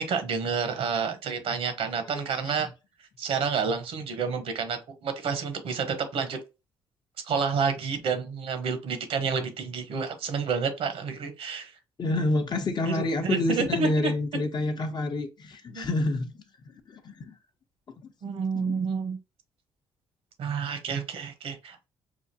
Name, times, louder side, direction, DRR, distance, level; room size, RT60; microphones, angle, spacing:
voice 1, 0.0-2.7 3.2-6.4 7.3-11.7 12.8-14.1 15.7-15.9 18.2-19.2 20.4-21.9, right 5 dB, 70° right, 0.9 m, -29 dB
voice 2, 2.1-2.5 12.0-16.3 17.0-17.3 18.5-18.7, left 2 dB, 45° left, 0.8 m, -28 dB
4.9 x 2.3 x 2.7 m
supercardioid pair, 75°, 10 cm